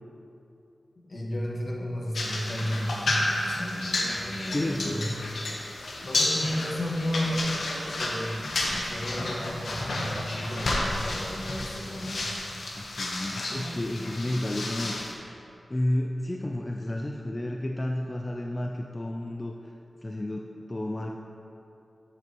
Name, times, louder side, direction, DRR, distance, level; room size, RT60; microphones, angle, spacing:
voice 1, 1.0-5.1 6.0-8.4 8.8-12.3, equal, 60° left, -2 dB, 1.4 m, -33 dB
sound 1, 2.1-15.1, left 2 dB, 90° left, 1.0 m, -31 dB
voice 2, 4.5-5.2 12.8-15.0 15.7-19.7 20.0-21.1, left 1 dB, 25° left, 1 dB, 0.4 m, -31 dB
9.3 x 7.8 x 3.0 m, 2.8 s
wide cardioid pair, 85°, 0 cm